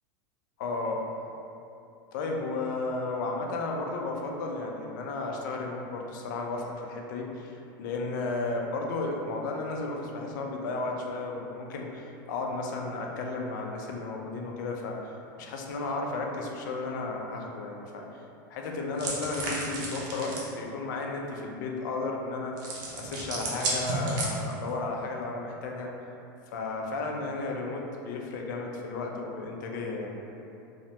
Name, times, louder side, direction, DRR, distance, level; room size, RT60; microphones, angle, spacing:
voice 1, 0.6-1.0 2.1-18.2 18.5-22.5 22.9-25.9 26.5-30.2, left 3 dB, 70° left, 0 dB, 0.4 m, -33 dB
sound 1, 19.0-20.5 22.6-24.7, right 2 dB, 60° right, 0.7 m, -33 dB
3.2 x 2.0 x 2.7 m, 2.8 s
supercardioid pair, 150°, 11 cm